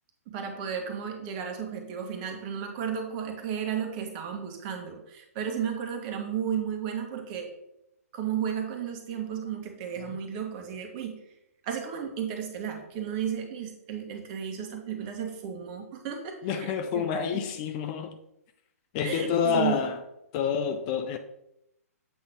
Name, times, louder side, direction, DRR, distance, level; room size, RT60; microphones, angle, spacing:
voice 1, 0.3-7.5 8.1-11.2 11.6-17.4 19.0-19.8, right 8 dB, 35° right, 1.5 m, -33 dB
voice 2, 16.4-18.2 18.9-20.0 20.3-21.2, left 7 dB, 30° left, 0.5 m, -28 dB
7.8 x 4.0 x 5.0 m
figure-of-eight pair, 125°, 9 cm